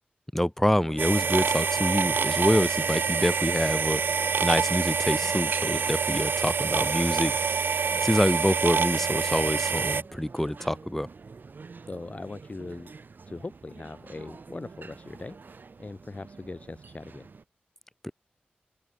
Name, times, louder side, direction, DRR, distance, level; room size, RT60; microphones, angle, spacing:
voice 1, 0.3-7.4 8.0-11.1 18.0-18.1, left 1 dB, 10° left, 1.3 m, -26 dB
sound 1, 0.7-17.4, right 4 dB, 60° right, 1.9 m, -47 dB
sound 2, 1.0-10.0, right 6 dB, 80° right, 1.2 m, -26 dB
voice 2, 11.8-12.9 13.3-17.3, left 3 dB, 40° left, 2.1 m, -40 dB
open air
cardioid pair, 60°, 4 cm